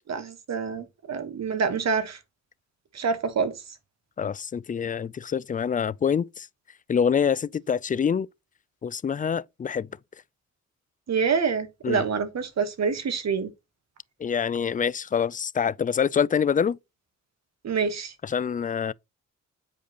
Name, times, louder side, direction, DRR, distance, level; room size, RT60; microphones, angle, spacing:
voice 1, 0.1-2.2 2.9-3.6 11.1-13.5 17.6-18.1, right 5 dB, 60° right, 1.3 m, -27 dB
voice 2, 4.2-6.5 6.9-8.3 8.8-9.9 11.8-12.0 14.2-16.8 18.2-18.9, left 7 dB, 30° left, 0.3 m, -25 dB
8.3 x 5.0 x 2.9 m
cardioid pair, 60°, 30 cm